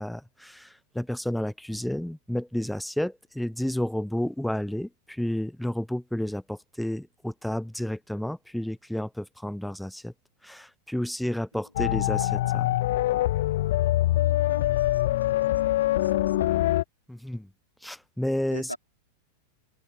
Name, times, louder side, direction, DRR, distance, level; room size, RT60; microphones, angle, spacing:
voice 1, 0.0-10.1 10.4-12.8 17.1-17.5 17.8-18.7, left 1 dB, ahead, 0.6 m, -31 dB
sound 1, 11.8-16.8, left 15 dB, 55° left, 0.9 m, -24 dB
voice 2, 14.1-15.0 15.5-16.5 18.5-18.8, equal, 90° left, 4.8 m, -43 dB
open air
figure-of-eight pair, 90°, 0 cm